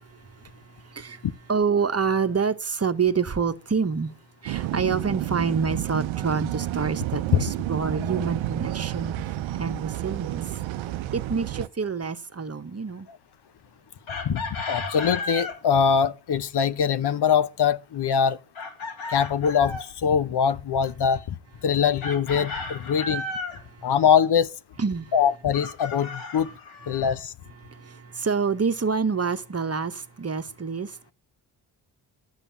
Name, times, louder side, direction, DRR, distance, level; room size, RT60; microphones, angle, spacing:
voice 1, 0.1-4.1 4.4-10.4 11.1-13.1 23.6-23.9 24.8-25.1 26.9-27.0 27.6-31.1, right 5 dB, 30° right, 1.2 m, -27 dB
sound 1, 4.5-11.7, right 14 dB, 70° right, 0.7 m, -30 dB
Chicken rooster, 14.1-15.6 18.6-19.9 22.0-23.6 25.5-27.1, left 3 dB, 75° left, 3.1 m, -34 dB
voice 2, 14.2-18.4 19.1-21.3 21.6-23.2 23.8-24.5 25.1-26.5 26.9-27.3, left 7 dB, 55° left, 0.9 m, -23 dB
11.5 x 6.9 x 6.9 m
supercardioid pair, 55°, 49 cm